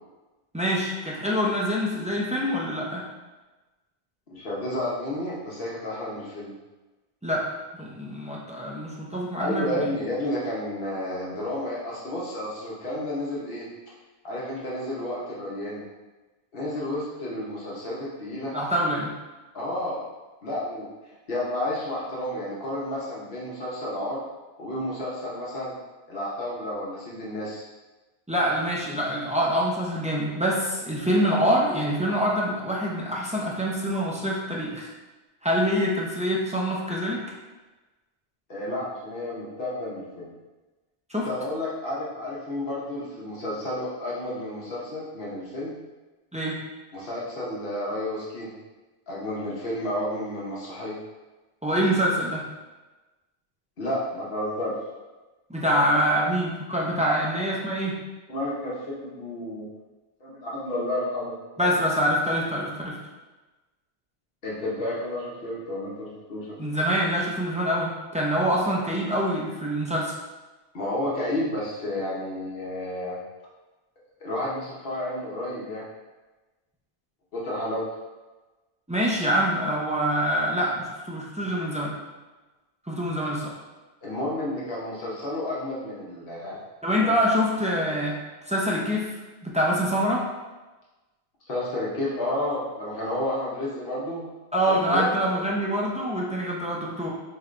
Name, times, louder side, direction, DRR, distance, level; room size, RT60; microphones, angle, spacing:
voice 1, 0.5-3.0 7.2-7.5 7.8-9.9 18.5-19.1 28.3-34.9 35.4-37.2 41.1-41.3 46.3-46.6 51.6-52.5 55.5-58.0 61.6-63.0 66.6-70.1 78.9-82.0 82.9-83.4 86.8-88.2 88.5-89.1 89.4-90.2 94.5-97.1, equal, 10° right, -5 dB, 0.4 m, -25 dB
voice 2, 4.3-6.5 9.4-13.7 14.2-15.8 16.5-18.5 19.5-20.0 20.4-24.2 24.6-25.8 26.1-27.6 38.5-40.3 41.2-45.7 46.9-48.6 49.1-51.0 53.8-54.7 55.7-55.8 57.1-57.2 58.3-59.6 60.2-61.3 64.4-66.6 70.7-73.2 74.2-75.8 77.3-77.9 84.0-86.6 87.0-87.1 91.5-94.2 94.7-95.2, left 1 dB, 60° left, -6 dB, 1.1 m, -31 dB
4.7 x 3.2 x 2.5 m, 1.2 s
omnidirectional pair, 1.1 m